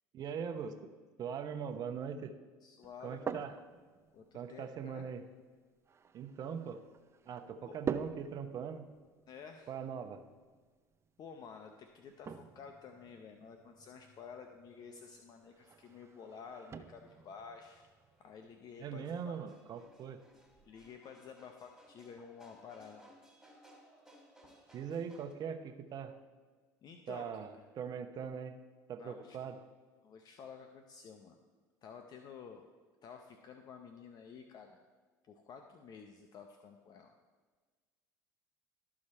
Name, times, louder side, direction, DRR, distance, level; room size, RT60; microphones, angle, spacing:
voice 1, 0.1-0.8 1.2-2.3 3.0-3.6 4.3-5.2 6.1-6.8 7.3-8.8 9.7-10.2 18.8-20.2 24.7-26.1 27.1-28.5 28.9-29.6, right 7 dB, 45° right, 8 dB, 0.8 m, -41 dB
voice 2, 2.6-3.4 4.1-5.1 7.6-7.8 9.3-9.7 11.2-17.9 18.2-19.4 20.6-23.1 26.8-27.4 29.0-29.4 30.0-31.4 31.8-32.6 33.0-34.8 35.3-37.1, left 6 dB, 45° left, 5 dB, 0.7 m, -51 dB
sound 1, 2.8-20.9, right 6 dB, 30° right, 0.5 m, -48 dB
sound 2, 14.7-25.3, equal, 5° right, 2.5 m, -64 dB
13.0 x 4.9 x 4.3 m, 1.4 s
supercardioid pair, 85°, 9 cm